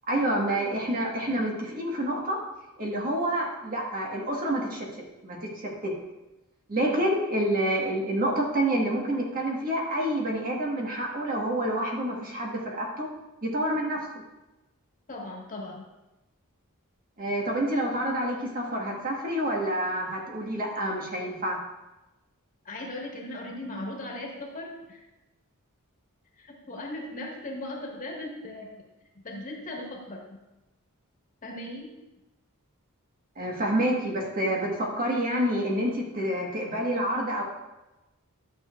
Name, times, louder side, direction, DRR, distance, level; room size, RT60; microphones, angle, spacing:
voice 1, 0.1-2.4 2.8-4.9 5.2-5.9 6.7-13.1 13.4-14.0 17.2-21.6 33.4-37.4, right 1 dB, 40° right, -1 dB, 1.5 m, -28 dB
voice 2, 15.1-15.8 22.6-25.1 26.3-28.8 29.1-30.4 31.4-31.9, left 1 dB, 35° left, -2 dB, 1.7 m, -38 dB
12.0 x 6.8 x 2.5 m, 1.0 s
head